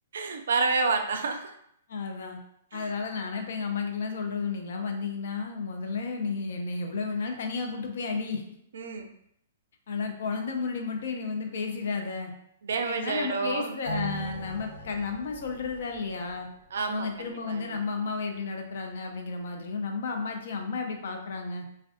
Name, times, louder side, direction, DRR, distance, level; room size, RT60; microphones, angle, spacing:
voice 1, 0.1-1.5 2.7-2.9 8.7-9.1 12.6-13.8 16.7-17.8, right 4 dB, 70° right, 6 dB, 0.3 m, -29 dB
voice 2, 1.9-2.4 2.7-8.4 9.9-12.3 12.8-16.5 16.9-21.6, left 4 dB, 65° left, 4 dB, 0.4 m, -32 dB
sound 1, 13.9-16.8 17.1-17.2, equal, 90° left, 0.9 m, -39 dB
2.3 x 2.2 x 2.4 m, 0.73 s
hypercardioid pair, 125°, 0 cm